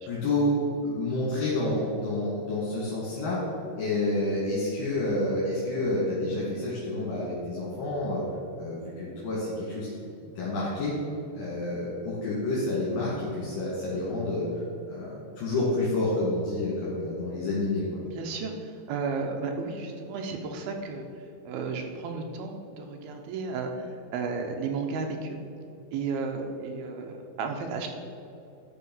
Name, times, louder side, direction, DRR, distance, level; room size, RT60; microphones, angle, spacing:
voice 1, 0.1-3.4 3.8-8.2 8.6-9.9 10.4-10.9 11.3-14.5 14.9-17.8, left 2 dB, 70° left, -8 dB, 4.0 m, -29 dB
voice 2, 18.1-18.5 18.9-21.0 21.5-25.4 25.9-27.9, right 4 dB, 80° right, 3 dB, 2.7 m, -33 dB
12.5 x 5.5 x 5.5 m, 2.7 s
omnidirectional pair, 4.3 m